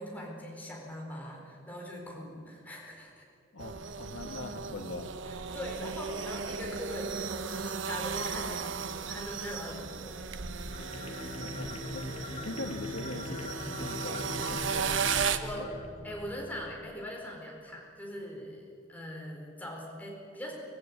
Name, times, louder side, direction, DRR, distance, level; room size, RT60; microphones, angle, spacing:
voice 1, 0.0-3.2 5.5-10.2 15.4-15.8 16.0-20.5, equal, 10° left, -2 dB, 4.4 m, -41 dB
voice 2, 3.5-5.1 11.3-15.2, left 2 dB, 80° left, 6 dB, 1.6 m, -42 dB
sound 1, 3.6-15.4, right 6 dB, 70° right, 1.1 m, -35 dB
sound 2, 10.5-16.8, left 2 dB, 30° left, 2.4 m, -41 dB
25.0 x 16.5 x 8.8 m, 2.4 s
head